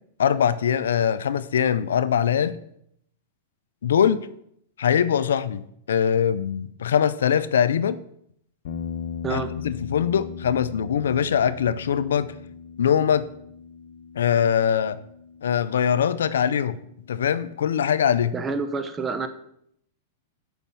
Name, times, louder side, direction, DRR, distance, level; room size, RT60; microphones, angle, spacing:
voice 1, 0.2-2.6 3.8-4.3 4.8-5.6 5.9-8.0 9.3-12.3 12.8-13.3 14.2-15.0 15.4-16.8 17.1-18.3, left 8 dB, 85° left, 15 dB, 0.5 m, -22 dB
sound 1, 8.6-17.0, left 7 dB, 70° left, 0.8 m, -38 dB
voice 2, 18.3-19.3, right 4 dB, 20° right, 9 dB, 0.8 m, -28 dB
7.1 x 5.7 x 5.7 m, 0.72 s
hypercardioid pair, 130°, 0 cm